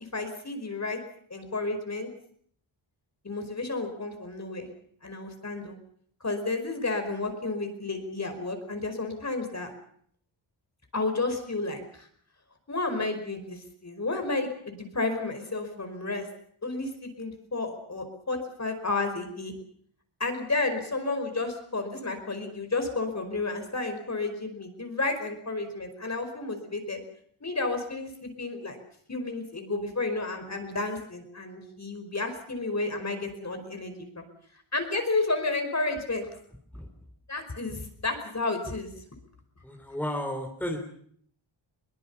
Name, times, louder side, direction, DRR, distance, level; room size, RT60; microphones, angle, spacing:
voice 1, 0.1-1.0 1.3-2.1 3.2-4.7 5.0-5.8 6.2-9.7 10.9-12.1 12.7-16.3 16.6-19.5 20.2-27.0 27.4-28.8 29.1-34.2 34.7-36.3 37.3-38.9, left 3 dB, 35° left, 6 dB, 5.0 m, -31 dB
voice 2, 39.6-40.8, equal, 5° left, 3 dB, 3.7 m, -33 dB
22.5 x 21.0 x 7.1 m, 0.62 s
wide cardioid pair, 95°, 48 cm